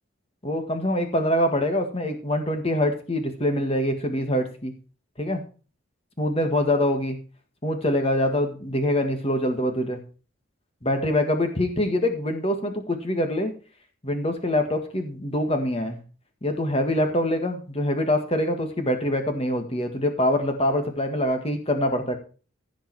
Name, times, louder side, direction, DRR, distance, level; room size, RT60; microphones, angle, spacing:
voice 1, 0.4-4.7 5.2-5.4 6.2-7.2 7.6-10.0 10.8-13.5 14.0-16.0 16.4-22.2, left 1 dB, 30° left, 5 dB, 1.8 m, -24 dB
15.5 x 5.3 x 4.8 m, 0.36 s
head